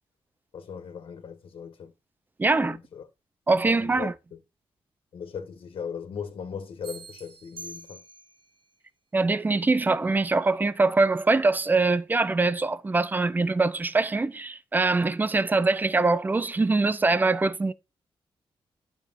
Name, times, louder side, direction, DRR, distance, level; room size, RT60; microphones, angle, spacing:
voice 1, 0.5-1.9 2.5-3.1 3.8-4.4 5.1-8.0, left 6 dB, 60° left, 1.8 m, -38 dB
voice 2, 2.4-2.8 3.5-4.1 9.1-17.7, right 3 dB, 20° right, 0.7 m, -23 dB
sound 1, 6.8-8.5, right 2 dB, 70° right, 3.9 m, -45 dB
11.5 x 6.8 x 2.7 m
wide cardioid pair, 160°, 10 cm